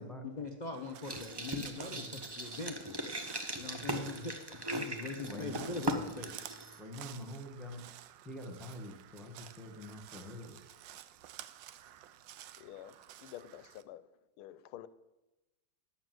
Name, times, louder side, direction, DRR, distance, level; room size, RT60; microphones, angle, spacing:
voice 1, 0.2-2.9 3.6-6.4, left 3 dB, 70° left, 0.4 m, -42 dB
Crow, 0.7-13.8, right 12 dB, 70° right, 1.2 m, -52 dB
sound 1, 1.0-6.8, right 1 dB, 40° right, 0.3 m, -39 dB
voice 2, 5.3-5.7 6.8-7.8 8.2-10.6, left 1 dB, ahead, 1.4 m, -45 dB
voice 3, 12.6-14.1 14.4-14.9, left 12 dB, 85° left, 1.5 m, -49 dB
11.0 x 7.1 x 7.7 m
omnidirectional pair, 2.3 m